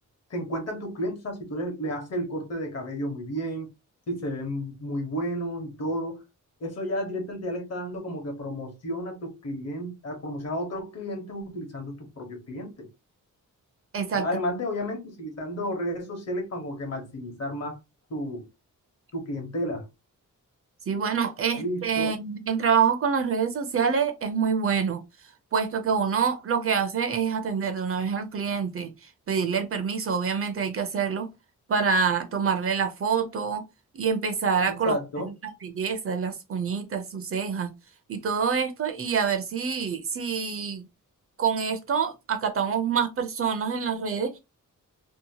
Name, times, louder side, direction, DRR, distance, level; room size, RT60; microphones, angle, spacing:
voice 1, 0.3-3.7 4.1-6.2 6.6-12.9 14.2-17.8 18.1-18.5 19.1-19.9 21.6-22.1 34.7-35.3, equal, 55° left, 1.0 m, -32 dB
voice 2, 13.9-14.3 20.9-25.0 25.5-31.3 31.7-33.6 33.9-35.0 35.4-37.7 38.1-40.9 41.4-44.4, right 6 dB, 45° right, 0.4 m, -26 dB
2.8 x 2.1 x 2.7 m
wide cardioid pair, 175°, 31 cm